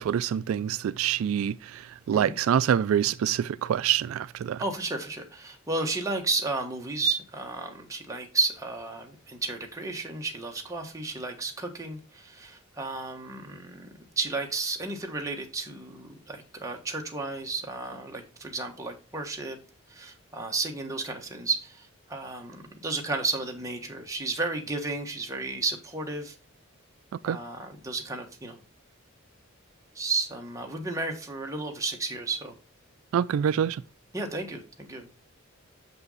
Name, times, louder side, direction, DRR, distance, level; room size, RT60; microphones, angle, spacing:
voice 1, 0.0-4.6 27.2-27.4 33.1-33.8, right 9 dB, 75° right, 0.3 m, -26 dB
voice 2, 4.6-13.9 14.2-19.6 19.9-26.3 27.2-28.6 29.9-32.5 34.1-35.1, right 3 dB, 15° right, 1.4 m, -33 dB
6.9 x 5.6 x 4.0 m
head